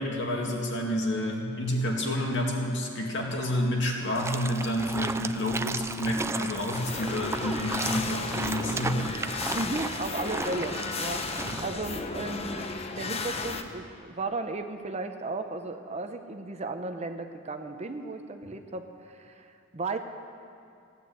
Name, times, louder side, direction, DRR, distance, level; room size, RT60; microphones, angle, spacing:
voice 1, 0.0-9.2 11.4-11.6, left 1 dB, 60° left, -1 dB, 2.3 m, -29 dB
sound 1, 4.1-11.6, right 3 dB, 15° right, 0.3 m, -35 dB
sound 2, 6.7-13.6, left 3 dB, 30° left, 0.8 m, -34 dB
voice 2, 9.5-12.7 13.0-20.0, right 2 dB, 30° right, 7 dB, 0.7 m, -35 dB
16.5 x 9.6 x 8.1 m, 2.5 s
head